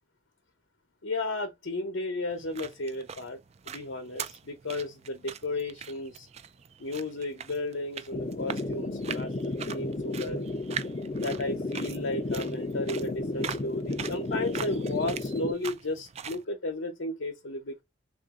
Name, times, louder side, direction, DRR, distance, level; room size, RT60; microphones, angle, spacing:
voice 1, 1.0-3.4 3.7-6.3 6.8-10.5 11.2-17.8, left 2 dB, 85° left, 0.8 m, -34 dB
sound 1, 2.3-16.4, right 7 dB, 35° right, 0.3 m, -42 dB
sound 2, 8.1-15.5, left 2 dB, 30° left, 0.5 m, -33 dB
3.8 x 2.6 x 3.6 m
head